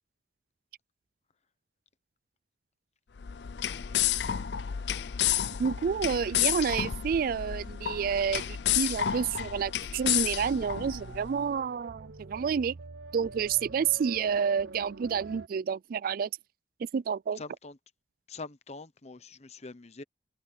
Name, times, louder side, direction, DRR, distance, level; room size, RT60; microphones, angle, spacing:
sound 1, 3.2-11.3, left 10 dB, 70° left, 0.5 m, -31 dB
voice 1, 5.6-12.8 13.1-16.3 16.9-17.4, right 6 dB, 55° right, 0.3 m, -29 dB
sound 2, 10.4-15.5, right 3 dB, 85° right, 0.8 m, -45 dB
voice 2, 17.4-17.7 18.3-20.0, left 3 dB, 40° left, 1.0 m, -44 dB
head